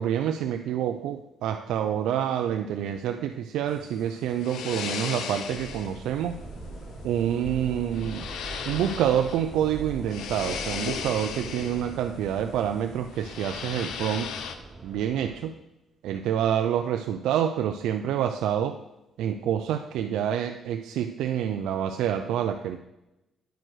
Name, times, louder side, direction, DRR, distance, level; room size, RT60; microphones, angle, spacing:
voice 1, 0.0-6.4 7.0-8.3 8.7-14.3 14.8-15.5 16.0-18.8 19.2-22.8, right 10 dB, 85° right, 6 dB, 0.4 m, -27 dB
sound 1, 3.7-14.5, left 7 dB, 80° left, 0.7 m, -37 dB
sound 2, 5.5-15.4, right 3 dB, 35° right, 1.7 m, -42 dB
9.1 x 4.6 x 6.2 m, 0.95 s
cardioid pair, 90°, 0 cm